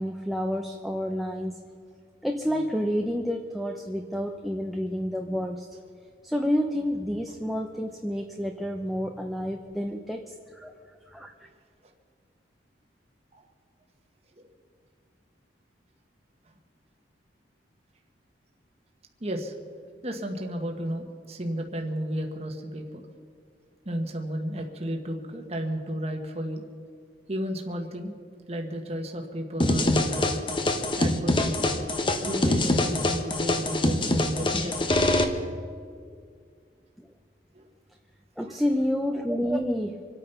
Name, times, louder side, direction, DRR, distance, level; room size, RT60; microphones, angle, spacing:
voice 1, 0.0-1.6 2.2-5.7 6.2-10.7 11.1-11.3 37.0-37.1 38.4-40.1, equal, ahead, 3 dB, 0.6 m, -29 dB
voice 2, 19.2-19.5 20.0-23.1 23.8-26.6 27.3-28.1 28.5-30.4 31.0-31.8 32.2-34.9 37.5-37.7 38.5-38.6, equal, 35° right, 2 dB, 1.4 m, -33 dB
sound 1, 29.6-35.2, left 1 dB, 25° left, 1.0 m, -24 dB
26.0 x 8.9 x 5.7 m, 2.1 s
head